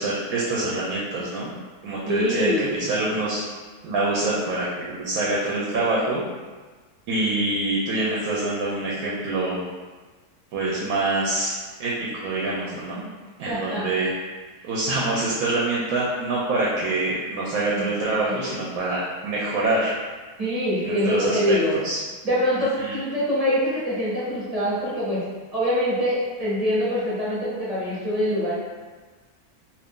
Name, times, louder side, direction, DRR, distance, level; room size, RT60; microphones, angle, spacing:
voice 1, 0.0-1.6 1.8-3.4 3.8-6.2 7.1-9.7 10.5-11.5 11.8-13.1 13.4-14.1 14.6-19.9 20.8-22.0 22.8-23.0, right 2 dB, 70° right, -5 dB, 1.0 m, -25 dB
voice 2, 2.1-2.9 13.5-13.9 14.6-14.7 17.7-17.9 18.2-18.3 20.4-21.8 22.2-25.2 25.5-28.5, equal, 30° right, -9 dB, 0.8 m, -24 dB
2.6 x 2.6 x 3.6 m, 1.3 s
omnidirectional pair, 1.7 m